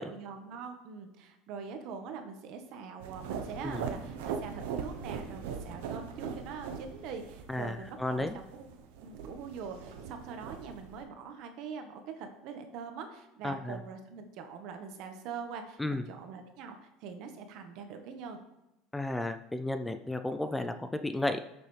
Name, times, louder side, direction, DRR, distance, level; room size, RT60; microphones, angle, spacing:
voice 1, 0.0-8.6 9.0-18.4, right 6 dB, 65° right, 6 dB, 1.4 m, -43 dB
sound 1, 3.0-11.0, right 6 dB, 85° right, 0.9 m, -40 dB
voice 2, 7.5-8.4 13.4-13.8 15.8-16.0 18.9-21.4, left 2 dB, 5° left, 9 dB, 0.5 m, -33 dB
14.0 x 6.8 x 3.4 m, 0.90 s
supercardioid pair, 115°, 0 cm